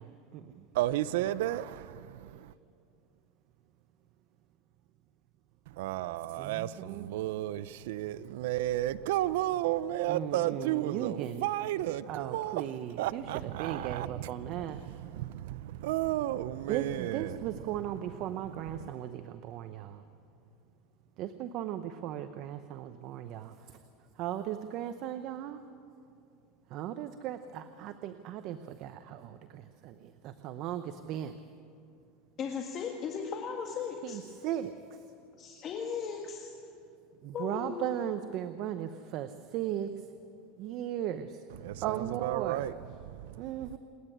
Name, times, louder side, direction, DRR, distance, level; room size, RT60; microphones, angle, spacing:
voice 1, 0.0-0.7 6.4-7.1 10.1-11.5 12.1-14.8 16.7-20.0 21.2-23.8 24.1-25.6 26.7-31.4 34.0-35.0 37.2-40.1 40.6-41.4 41.8-42.7 43.4-43.8, right 11 dB, 50° right, 0.8 m, -37 dB
voice 2, 0.7-2.5 5.7-12.6 13.0-17.4 18.8-18.9 41.6-42.7 43.1-43.4, right 14 dB, 75° right, 0.5 m, -33 dB
voice 3, 32.4-34.2 35.4-36.5 37.3-37.8, left 6 dB, 35° left, 1.7 m, -37 dB
27.5 x 10.0 x 9.9 m
supercardioid pair, 135°, 0 cm